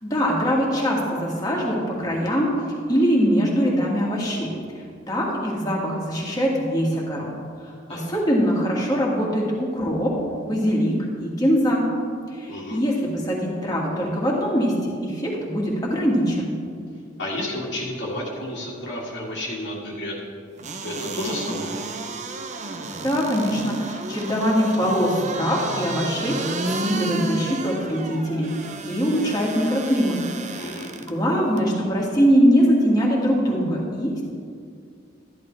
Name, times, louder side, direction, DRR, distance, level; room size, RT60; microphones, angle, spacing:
voice 1, 0.0-2.5 2.9-4.5 5.1-7.3 7.6-10.1 10.4-11.8 12.3-16.5 23.0-28.5 28.8-30.2 30.5-34.2, equal, 20° left, -3 dB, 2.0 m, -22 dB
voice 2, 12.5-12.8 17.2-20.2 20.8-21.8 30.5-30.9, left 1 dB, 70° left, -5 dB, 2.0 m, -31 dB
sound 1, 20.6-31.1 31.6-31.7, right 3 dB, 35° right, 0.6 m, -32 dB
13.0 x 11.0 x 3.3 m, 2.2 s
head